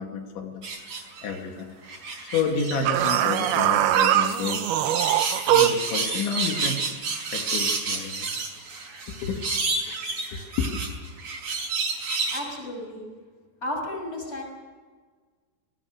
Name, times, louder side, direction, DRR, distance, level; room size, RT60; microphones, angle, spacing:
voice 1, 0.0-1.7 2.2-4.7 5.5-8.3 9.1-9.5 10.3-10.8, left 5 dB, 85° left, 3 dB, 4.5 m, -31 dB
sound 1, 0.6-1.4 1.8-3.6 3.9-12.4, right 4 dB, 40° right, 5.6 m, -30 dB
sound 2, 2.9-5.9, right 11 dB, 75° right, 2.5 m, -22 dB
voice 2, 12.3-13.1 13.6-14.4, left 1 dB, 15° left, 2 dB, 6.1 m, -33 dB
27.5 x 19.5 x 6.4 m, 1.5 s
omnidirectional pair, 5.2 m